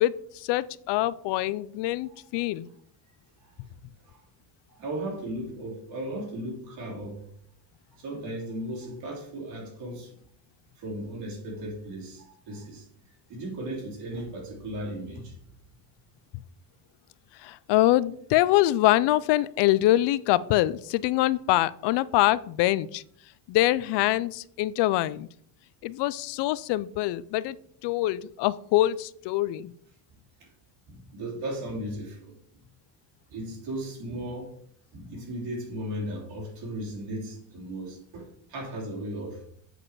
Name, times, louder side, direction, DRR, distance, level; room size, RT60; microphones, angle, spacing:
voice 1, 0.0-2.7 17.4-23.0 23.5-25.3 25.8-27.6 27.8-29.7, left 15 dB, 70° left, 18 dB, 0.5 m, -24 dB
voice 2, 4.7-7.2 7.9-10.1 10.8-12.9 13.3-15.3 30.4-30.5 30.9-32.3 33.3-34.6 34.9-39.4, right 1 dB, 75° right, -2 dB, 3.1 m, -36 dB
7.9 x 4.9 x 4.7 m, 0.62 s
cardioid pair, 150°, 43 cm